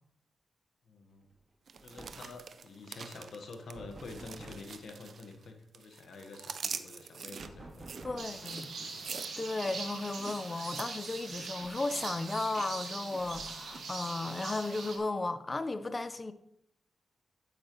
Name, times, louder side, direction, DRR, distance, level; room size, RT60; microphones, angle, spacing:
voice 1, 0.9-1.3 1.8-9.1, left 3 dB, 70° left, 1.2 m, -48 dB
sound 1, 1.3-1.5 1.8-2.4 3.7-4.8 7.4-8.4 10.0-10.1 10.5-10.6 11.6-12.2 13.2-13.8, right 2 dB, 35° right, 1.7 m, -50 dB
sound 2, 1.7-5.5 5.7-12.7 12.9-13.3 13.7-14.4 14.9-15.0, right 6 dB, 65° right, 0.5 m, -45 dB
voice 2, 8.0-8.8 9.4-16.3, left 2 dB, 30° left, 0.6 m, -35 dB
sound 3, 8.2-15.0, right 4 dB, 80° right, 1.8 m, -42 dB
8.9 x 8.8 x 3.0 m
cardioid pair, 75°, 0 cm